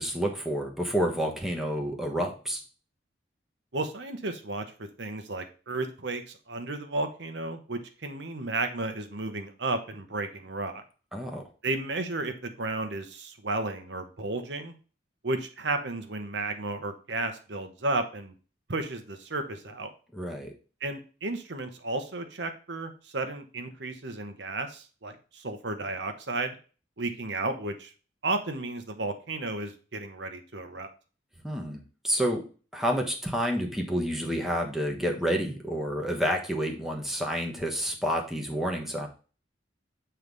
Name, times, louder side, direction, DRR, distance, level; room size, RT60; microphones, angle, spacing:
voice 1, 0.0-2.6 11.1-11.4 20.1-20.5 31.4-32.4 32.7-39.1, equal, ahead, 1 dB, 1.2 m, -29 dB
voice 2, 3.7-10.8 11.6-14.7 15.2-18.3 18.7-19.9 20.8-26.6 27.0-27.9 28.2-30.9, right 2 dB, 65° right, 7 dB, 1.0 m, -33 dB
7.9 x 3.3 x 5.3 m, 0.36 s
head